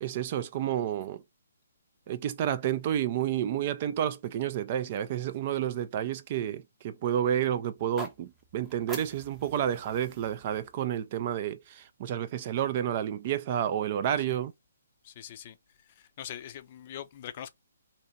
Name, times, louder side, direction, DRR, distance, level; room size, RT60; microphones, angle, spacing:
voice 1, 0.0-1.2 2.1-14.5, right 10 dB, 40° right, 0.4 m, -30 dB
sound 1, 7.8-11.9, right 1 dB, 10° right, 0.8 m, -46 dB
voice 2, 15.0-15.6 15.8-17.5, left 10 dB, 40° left, 0.4 m, -43 dB
2.9 x 2.5 x 4.3 m
figure-of-eight pair, 135°, 0 cm